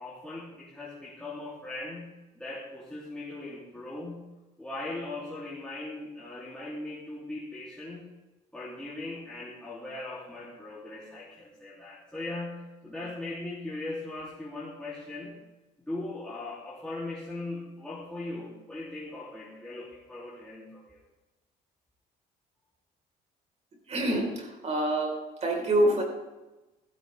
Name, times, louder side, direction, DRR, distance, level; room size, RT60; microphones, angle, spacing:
voice 1, 0.0-4.2 4.6-8.1 8.5-15.4 15.9-21.0, left 2 dB, 5° left, -8 dB, 3.4 m, -39 dB
voice 2, 23.9-25.1 25.4-26.0, right 1 dB, 40° right, 1 dB, 4.9 m, -26 dB
15.5 x 15.0 x 3.7 m, 1.1 s
cardioid pair, 110°, 17 cm